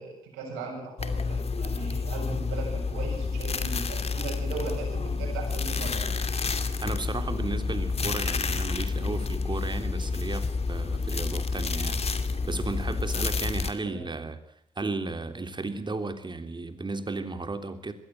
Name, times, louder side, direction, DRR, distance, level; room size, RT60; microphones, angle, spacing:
voice 1, 0.0-6.1 13.8-14.1, right 4 dB, 85° right, 0 dB, 6.8 m, -38 dB
sound 1, 1.0-13.7, left 4 dB, 40° left, 2.6 m, -29 dB
voice 2, 6.8-12.0 12.5-14.4 14.8-17.9, right 3 dB, 30° right, 8 dB, 3.4 m, -34 dB
21.5 x 16.0 x 9.1 m, 0.69 s
hypercardioid pair, 50°, 16 cm